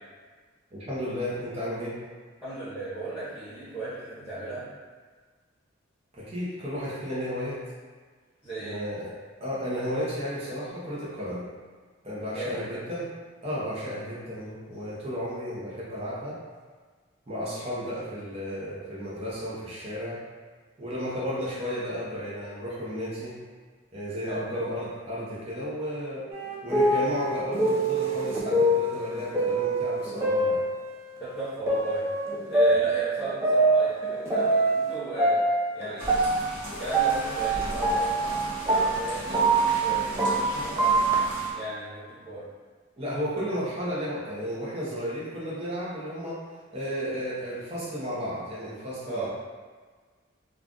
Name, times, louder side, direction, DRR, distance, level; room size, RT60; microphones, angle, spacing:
voice 1, 0.7-1.9 6.2-7.6 8.6-9.1 9.4-11.5 12.0-13.0 13.4-16.4 17.3-20.2 20.8-23.4 23.9-26.2 26.6-30.6 40.6-40.7 43.0-46.4 46.7-49.3, equal, 30° right, -9 dB, 0.7 m, -33 dB
voice 2, 2.4-4.7 8.4-8.8 12.3-12.8 24.2-24.4 31.2-32.0 32.5-35.4 35.7-36.3 36.8-41.0 41.5-42.4 49.1-49.3, right 2 dB, 10° left, -13 dB, 0.9 m, -35 dB
sound 1, 26.3-31.1 31.7-34.9 35.2-41.3, right 2 dB, 15° right, 0.4 m, -24 dB
sound 2, 36.0-41.5, equal, 55° right, 1.0 m, -37 dB
2.4 x 2.4 x 3.7 m, 1.5 s
head